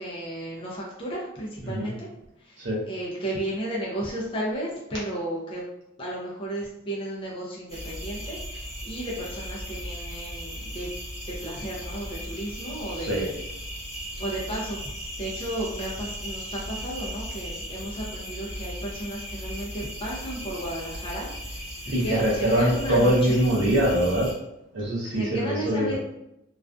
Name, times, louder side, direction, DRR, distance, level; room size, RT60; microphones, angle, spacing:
voice 1, 0.0-2.1 2.4-5.6 6.0-10.9 11.2-13.4 14.2-14.8 15.2-21.7 22.0-23.4 25.1-26.0, right 1 dB, 30° left, -5 dB, 0.4 m, -33 dB
sound 1, 7.7-24.3, equal, ahead, 1.3 m, -37 dB
voice 2, 21.9-24.3 24.7-26.0, equal, 70° right, -5 dB, 0.6 m, -23 dB
2.4 x 2.3 x 2.3 m, 0.85 s
head